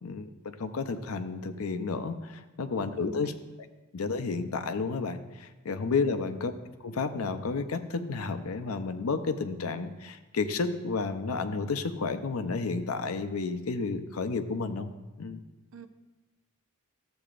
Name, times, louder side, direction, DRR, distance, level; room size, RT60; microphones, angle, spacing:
voice 1, 0.0-3.3 3.9-6.5 6.8-14.9 15.2-15.4, left 4 dB, 80° left, 10 dB, 0.6 m, -31 dB
voice 2, 2.8-3.3 6.0-6.2 15.7-15.9, right 2 dB, 65° right, 9 dB, 0.5 m, -46 dB
13.5 x 7.8 x 2.5 m, 1.1 s
head